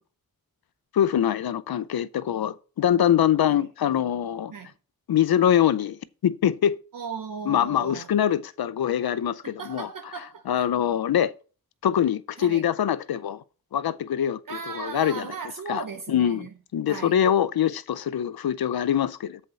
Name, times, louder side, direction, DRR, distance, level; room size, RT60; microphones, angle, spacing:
voice 1, 0.9-4.5 5.1-6.8 7.5-9.9 10.5-11.3 11.8-13.4 13.7-15.3 15.7-19.4, left 10 dB, 80° left, 0.6 m, -24 dB
voice 2, 6.9-8.1 9.4-10.7 12.4-12.6 14.5-16.5 16.9-17.2, right 5 dB, 65° right, 0.8 m, -37 dB
7.9 x 4.4 x 6.3 m
wide cardioid pair, 85°, 36 cm